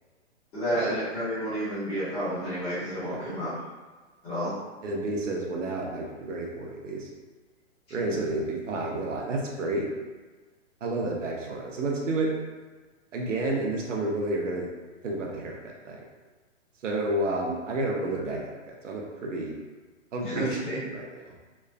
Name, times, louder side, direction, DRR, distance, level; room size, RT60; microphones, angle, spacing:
voice 1, 0.5-3.5 4.2-4.5 8.1-8.2 18.3-18.4 20.2-20.8, equal, 15° left, -11 dB, 0.9 m, -30 dB
voice 2, 4.8-7.1 7.9-9.9 10.8-12.3 13.1-14.7 15.0-16.0 16.8-19.6 20.1-20.5 20.9-21.3, right 2 dB, 85° right, -1 dB, 0.8 m, -30 dB
3.0 x 2.4 x 2.2 m, 1.3 s
hypercardioid pair, 155°, 36 cm